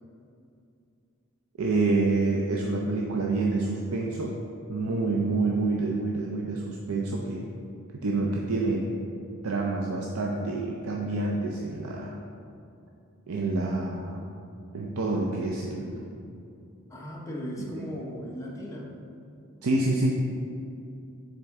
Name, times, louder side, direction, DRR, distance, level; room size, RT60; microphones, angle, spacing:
voice 1, 1.6-4.4 4.7-7.4 7.9-8.9 9.4-12.2 13.3-14.2 14.7-16.1 17.7-17.9 19.6-20.1, right 3 dB, 80° right, -2 dB, 0.5 m, -27 dB
voice 2, 4.9-5.3 16.9-18.9, equal, 15° left, -3 dB, 0.8 m, -37 dB
7.3 x 3.8 x 3.5 m, 2.6 s
head